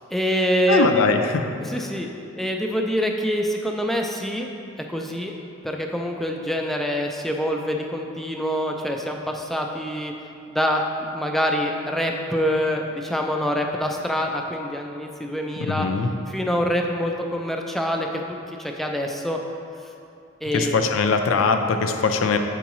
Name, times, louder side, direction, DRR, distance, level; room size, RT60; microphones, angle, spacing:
voice 1, 0.0-0.9 1.6-2.1 2.3-4.5 4.9-5.3 5.6-10.1 10.5-10.8 11.1-15.9 16.3-19.4 20.4-20.9, equal, ahead, 2 dB, 0.3 m, -25 dB
voice 2, 0.7-1.4 15.6-16.1 20.5-22.4, left 4 dB, 75° left, 6 dB, 0.4 m, -21 dB
7.0 x 4.6 x 3.0 m, 2.6 s
head